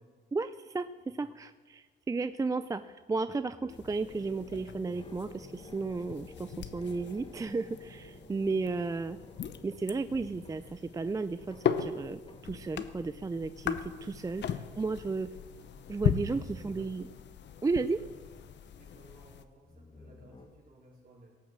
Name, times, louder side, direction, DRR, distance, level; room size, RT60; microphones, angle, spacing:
voice 1, 0.3-9.2 9.6-15.3 15.9-17.1 17.6-18.0, right 3 dB, 15° right, 12 dB, 0.4 m, -34 dB
sound 1, 2.8-13.0 18.2-18.9 19.6-20.5, left 3 dB, 30° left, 1.8 m, -53 dB
sound 2, 3.7-19.5, left 8 dB, 65° left, 0.8 m, -38 dB
voice 2, 14.5-15.6 16.3-17.2 18.0-18.4 18.7-21.4, right 2 dB, 50° right, -2 dB, 4.3 m, -59 dB
17.5 x 7.0 x 7.5 m, 1.4 s
cardioid pair, 90°, 20 cm